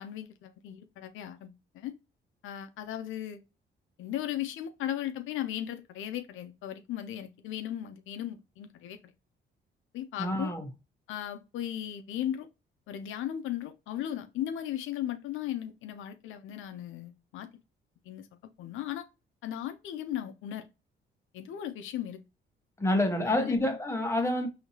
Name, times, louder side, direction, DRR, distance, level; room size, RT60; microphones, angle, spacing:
voice 1, 0.0-1.9 2.4-3.4 4.0-9.0 9.9-10.5 11.1-12.5 12.9-17.5 18.0-18.3 18.6-19.1 19.4-20.7 21.3-22.2 22.9-23.6, left 11 dB, 85° left, 0.6 m, -37 dB
voice 2, 10.2-10.7 22.8-24.5, left 1 dB, 15° left, 1.0 m, -28 dB
4.3 x 2.8 x 2.8 m
cardioid pair, 90°, 20 cm